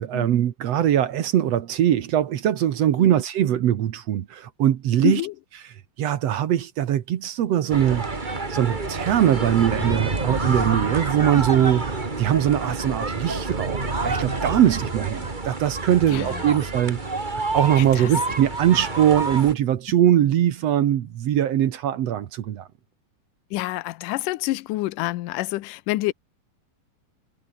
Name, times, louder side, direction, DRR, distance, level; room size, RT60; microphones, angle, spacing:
voice 1, 0.0-5.2 6.0-8.1 8.5-17.0 17.5-22.7, right 11 dB, 60° right, 1.8 m, -21 dB
voice 2, 5.0-5.3 16.1-16.6 17.8-18.1 23.5-26.1, left 18 dB, 75° left, 2.2 m, -28 dB
sound 1, 7.7-19.5, right 3 dB, 20° right, 1.3 m, -28 dB
omnidirectional pair, 4.2 m